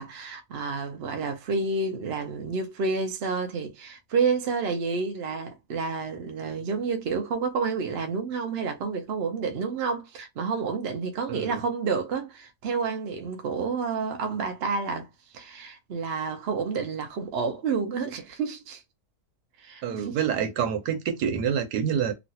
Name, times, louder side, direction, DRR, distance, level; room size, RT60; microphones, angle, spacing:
voice 1, 0.0-15.1 15.3-18.8 19.6-20.2, right 4 dB, 55° right, 0.7 m, -29 dB
voice 2, 11.3-11.6 19.8-22.1, right 8 dB, 85° right, 1.3 m, -27 dB
3.1 x 2.5 x 2.7 m
omnidirectional pair, 1.7 m